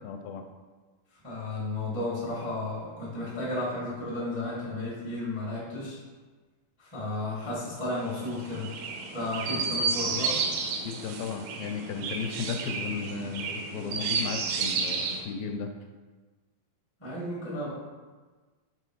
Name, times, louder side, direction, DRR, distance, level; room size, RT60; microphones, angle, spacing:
voice 1, 0.0-0.4 10.8-15.7, left 6 dB, 85° left, 5 dB, 2.3 m, -35 dB
voice 2, 1.2-6.0 6.8-8.7 9.1-10.4 17.0-17.7, left 2 dB, 35° left, -7 dB, 0.4 m, -33 dB
Chirp tweet, 8.0-15.2, right 4 dB, 85° right, 2.4 m, -32 dB
6.2 x 3.3 x 4.7 m, 1.3 s
omnidirectional pair, 4.2 m